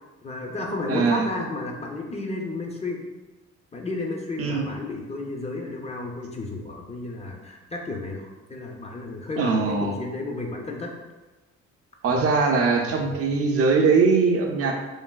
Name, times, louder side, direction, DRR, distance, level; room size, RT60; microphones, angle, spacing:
voice 1, 0.2-3.0 3.7-10.9 12.1-12.5 12.8-13.1, left 2 dB, 20° left, 0 dB, 0.4 m, -32 dB
voice 2, 0.9-1.3 4.4-4.7 9.4-9.9 12.0-14.8, right 4 dB, 50° right, 2 dB, 0.4 m, -21 dB
3.2 x 2.6 x 2.2 m, 1.2 s
cardioid pair, 90°, 30 cm